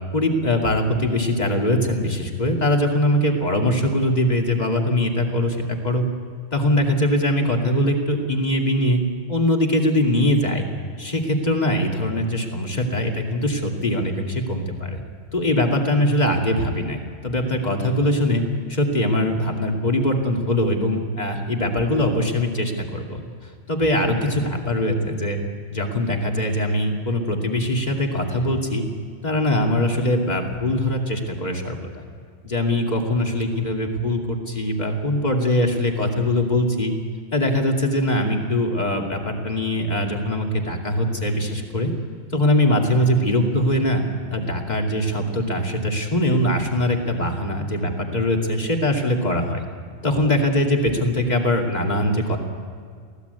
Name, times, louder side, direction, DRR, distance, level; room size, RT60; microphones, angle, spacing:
voice 1, 0.1-6.0 6.5-9.0 9.3-10.7 11.0-15.0 15.3-18.4 18.7-25.4 25.7-28.8 29.2-32.1 32.4-36.9 37.3-41.9 42.3-44.0 44.3-49.6 50.0-52.4, left 1 dB, 40° left, 1 dB, 2.7 m, -22 dB
23.5 x 16.5 x 8.2 m, 2.1 s
omnidirectional pair, 1.1 m